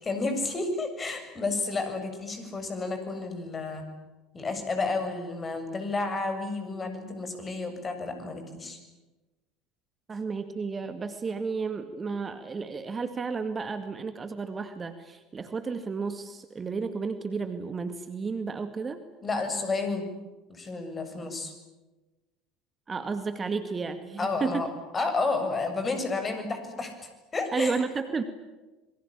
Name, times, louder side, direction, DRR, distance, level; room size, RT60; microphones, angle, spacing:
voice 1, 0.0-3.8 4.3-8.8 19.2-20.1 20.5-21.5 24.2-24.7 24.9-27.8, left 3 dB, 25° left, 7 dB, 7.4 m, -31 dB
voice 2, 10.1-19.0 22.9-24.7 27.5-28.2, right 4 dB, 25° right, 9 dB, 2.1 m, -32 dB
27.5 x 23.0 x 8.7 m, 1.1 s
figure-of-eight pair, 65°, 0 cm